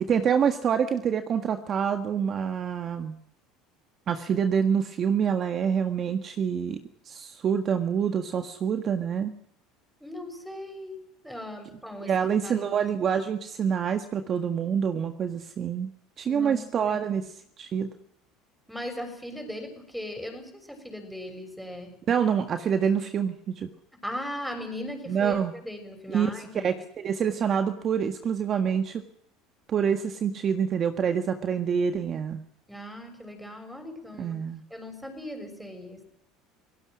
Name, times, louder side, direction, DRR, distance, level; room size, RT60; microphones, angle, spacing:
voice 1, 0.0-3.1 4.1-6.8 7.0-9.3 12.0-15.9 16.2-17.2 17.6-17.9 22.1-23.7 25.1-25.5 26.1-26.3 26.6-29.0 29.7-32.4 34.2-34.6, right 7 dB, 40° right, 7 dB, 1.6 m, -26 dB
voice 2, 10.0-12.1 12.4-12.8 16.2-17.0 18.7-22.1 23.9-26.8 32.7-34.4 34.7-36.0, left 1 dB, ahead, 5 dB, 6.4 m, -38 dB
28.5 x 17.5 x 6.3 m, 0.71 s
supercardioid pair, 105°, 0 cm